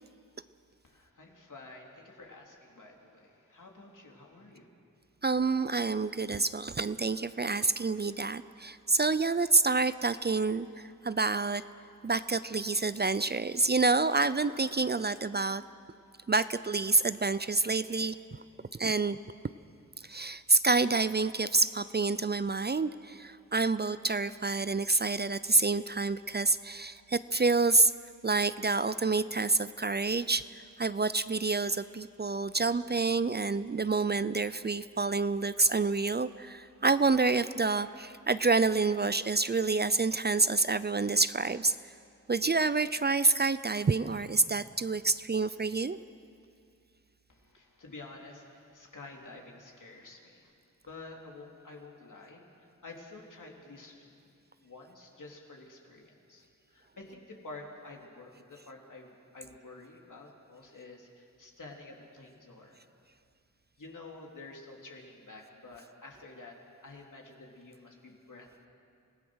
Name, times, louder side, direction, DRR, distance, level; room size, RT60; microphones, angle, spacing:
voice 1, 0.8-4.7 47.3-50.5 50.8-54.3 54.6-62.8 63.8-68.7, left 2 dB, 70° left, 0 dB, 3.2 m, -50 dB
voice 2, 5.2-11.6 12.0-15.6 16.3-18.4 18.7-19.2 20.0-27.9 28.2-41.9 42.3-46.0, right 3 dB, 30° right, 14 dB, 0.5 m, -28 dB
27.5 x 17.0 x 6.3 m, 2.4 s
wide cardioid pair, 75°, 32 cm